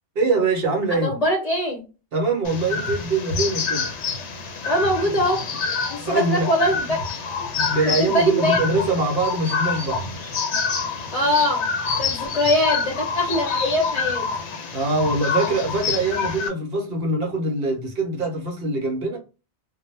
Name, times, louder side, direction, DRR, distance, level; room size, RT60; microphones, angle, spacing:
voice 1, 0.2-1.1 2.1-3.9 6.0-6.5 7.6-10.1 14.7-19.2, right 2 dB, 60° right, 0.8 m, -23 dB
voice 2, 1.0-1.8 4.6-5.4 5.9-7.0 7.9-8.6 11.1-11.6 12.0-14.3, left 1 dB, 40° left, 0.7 m, -22 dB
sound 1, 2.4-16.5, left 5 dB, 80° left, 1.0 m, -27 dB
2.2 x 2.1 x 3.1 m
omnidirectional pair, 1.2 m